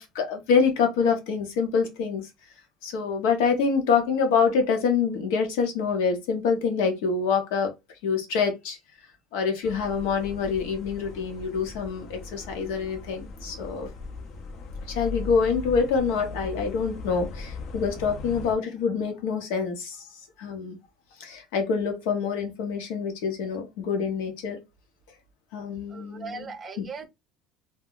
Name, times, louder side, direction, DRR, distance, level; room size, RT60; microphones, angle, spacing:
voice 1, 0.0-2.3 2.8-7.7 8.0-8.8 9.3-13.9 14.9-20.1 20.4-20.8 21.2-24.6 25.5-26.5, left 5 dB, 85° left, 0.9 m, -26 dB
sound 1, 9.6-18.5, left 2 dB, 55° left, 0.7 m, -39 dB
voice 2, 25.9-27.1, right 4 dB, 30° right, 0.6 m, -38 dB
2.3 x 2.1 x 3.7 m
supercardioid pair, 110°, 0 cm